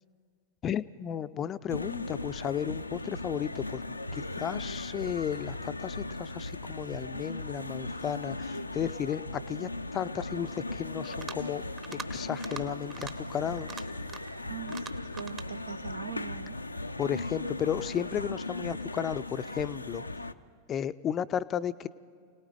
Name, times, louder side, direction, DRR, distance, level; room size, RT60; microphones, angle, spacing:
voice 1, 0.6-3.8 4.1-11.6 11.9-13.8 17.0-20.0 20.7-21.9, left 9 dB, 30° left, 15 dB, 0.5 m, -34 dB
sound 1, 1.7-20.3, left 2 dB, 85° left, 0.5 m, -38 dB
sound 2, 11.0-11.5 11.8-12.1 12.4-12.6 12.9-13.1 13.6-14.4 14.7-15.5, right 6 dB, 30° right, 1.0 m, -42 dB
voice 2, 14.5-16.6, right 9 dB, 65° right, 14 dB, 0.6 m, -42 dB
29.5 x 18.5 x 4.9 m, 2.1 s
figure-of-eight pair, 90°, 0 cm